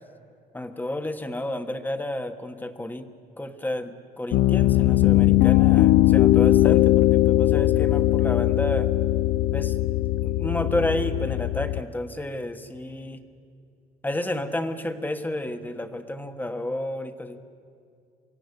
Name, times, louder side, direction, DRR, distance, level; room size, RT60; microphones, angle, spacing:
voice 1, 0.5-3.0 3.4-8.9 9.5-9.8 10.2-13.2 14.0-17.4, left 1 dB, 10° left, 8 dB, 1.3 m, -31 dB
Piano, 4.3-11.8, left 15 dB, 75° left, 0.5 m, -19 dB
24.5 x 15.5 x 9.9 m, 2.3 s
cardioid pair, 110°, 17 cm